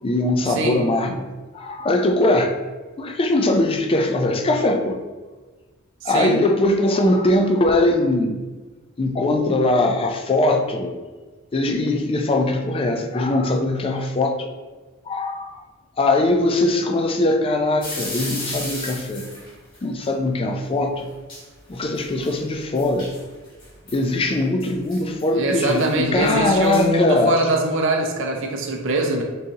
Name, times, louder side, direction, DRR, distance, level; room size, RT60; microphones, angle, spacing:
voice 1, 0.0-1.3 1.5-2.6 3.0-5.0 6.0-8.4 9.0-10.9 11.5-14.5 15.1-15.6 16.0-19.3 19.8-21.1 21.7-23.1 23.9-27.4, left 2 dB, 25° left, 4 dB, 0.4 m, -21 dB
voice 2, 6.0-6.3 25.3-29.2, right 2 dB, 65° right, 2 dB, 0.5 m, -22 dB
sound 1, 17.8-19.8 21.0-21.1 21.3-21.4 21.7-24.0 24.6-26.9, left 1 dB, 45° left, 1.4 m, -35 dB
3.9 x 3.7 x 2.7 m, 1.3 s
head